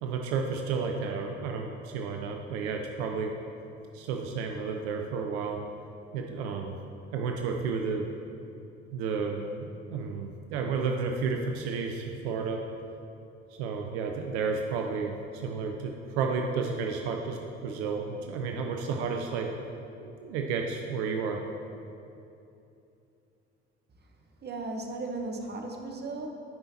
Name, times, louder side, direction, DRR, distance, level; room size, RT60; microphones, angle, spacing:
voice 1, 0.0-3.3 3.9-5.6 6.1-6.8 7.1-8.1 8.9-12.6 13.5-19.5 20.2-21.4, right 5 dB, 70° right, 2 dB, 0.6 m, -32 dB
voice 2, 24.4-26.3, right 3 dB, 30° right, 2 dB, 1.1 m, -36 dB
12.0 x 5.5 x 2.8 m, 2.7 s
hypercardioid pair, 55°, 34 cm